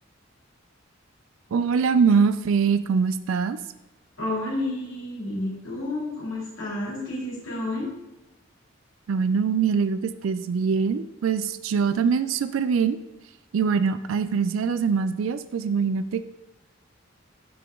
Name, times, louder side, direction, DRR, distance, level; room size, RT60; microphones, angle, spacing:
voice 1, 1.5-3.6 9.1-13.0 13.5-16.2, right 6 dB, 80° right, 12 dB, 0.4 m, -23 dB
voice 2, 4.2-7.9, left 1 dB, 85° left, -4 dB, 2.7 m, -30 dB
6.8 x 5.8 x 3.7 m, 1.0 s
head